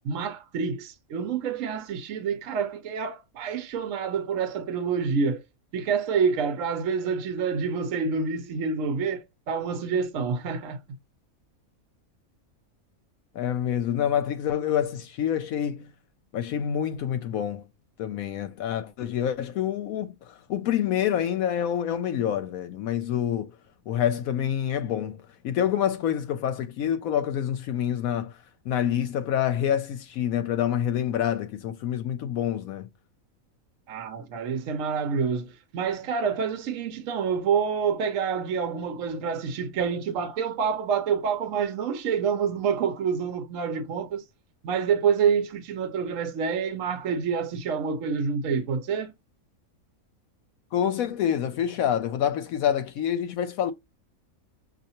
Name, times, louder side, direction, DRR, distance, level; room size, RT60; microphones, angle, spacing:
voice 1, 0.0-5.4 5.7-10.8 33.9-44.2 44.6-49.1, right 6 dB, 65° right, 1.0 m, -27 dB
voice 2, 13.3-15.9 16.3-17.6 18.0-23.5 23.9-28.3 28.7-32.9 50.7-53.7, left 9 dB, 75° left, 1.0 m, -27 dB
6.4 x 2.7 x 2.9 m
omnidirectional pair, 1.5 m